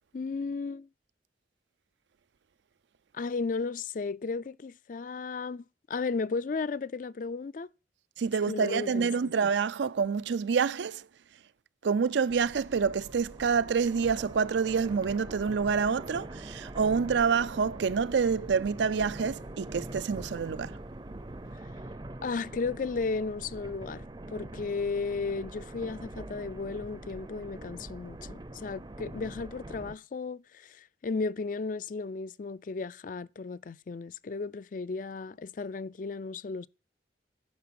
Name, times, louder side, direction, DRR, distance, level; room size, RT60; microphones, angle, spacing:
voice 1, 0.1-0.9 3.1-7.7 8.5-9.3 22.2-36.7, left 4 dB, 45° left, 0.4 m, -34 dB
voice 2, 8.2-11.1 11.8-20.8, right 5 dB, 75° right, 0.4 m, -27 dB
sound 1, 12.3-30.0, right 1 dB, 25° right, 0.6 m, -43 dB
9.6 x 6.0 x 5.7 m
head